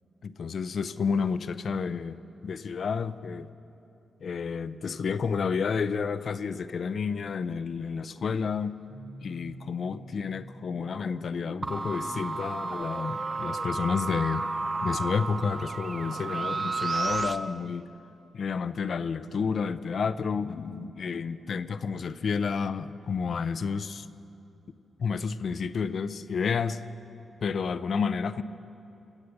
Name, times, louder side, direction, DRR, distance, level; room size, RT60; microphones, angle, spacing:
voice 1, 0.2-3.5 4.2-8.8 9.2-14.4 14.8-17.9 18.3-24.1 25.0-26.8 27.4-28.4, left 5 dB, 65° left, 14 dB, 0.6 m, -30 dB
sound 1, 8.9-17.5, equal, 5° right, 1.3 m, -47 dB
sound 2, 11.6-17.4, right 3 dB, 35° right, 0.6 m, -32 dB
24.5 x 8.5 x 6.8 m, 2.8 s
supercardioid pair, 50°, 0 cm